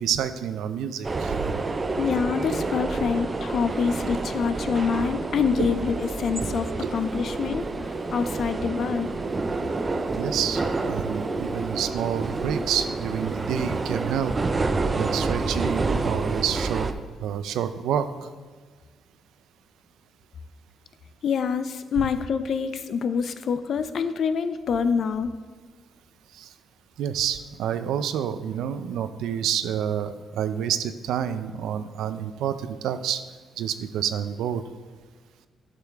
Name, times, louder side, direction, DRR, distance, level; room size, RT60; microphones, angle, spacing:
voice 1, 0.0-1.6 5.6-5.7 6.8-6.9 10.2-14.3 15.0-16.9 17.2-18.1 26.3-26.5 27.0-33.2 33.6-34.6, right 9 dB, 90° right, 11 dB, 0.5 m, -28 dB
sound 1, 1.0-16.9, right 3 dB, 20° right, 0.4 m, -28 dB
voice 2, 2.0-7.7 8.1-9.1 21.2-25.3, left 6 dB, 50° left, 11 dB, 0.5 m, -26 dB
11.5 x 6.7 x 3.5 m, 1.5 s
cardioid pair, 165°, 0 cm